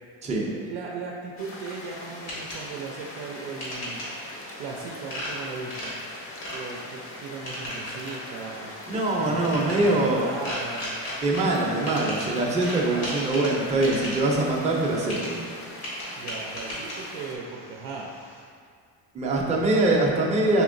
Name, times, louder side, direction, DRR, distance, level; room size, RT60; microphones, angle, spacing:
voice 1, 0.5-4.0 4.6-5.9 6.5-8.8 9.2-10.9 12.8-13.5 16.2-18.1, right 4 dB, 90° right, -2 dB, 0.5 m, -37 dB
sound 1, 1.4-17.4, left 1 dB, 30° left, 0.6 m, -42 dB
sound 2, 1.7-18.4, equal, 85° left, 1.5 m, -38 dB
voice 2, 8.9-10.3 11.2-15.4 19.1-20.6, right 2 dB, 15° right, -3 dB, 0.5 m, -23 dB
4.4 x 2.9 x 2.5 m, 2.1 s
supercardioid pair, 100°, 47 cm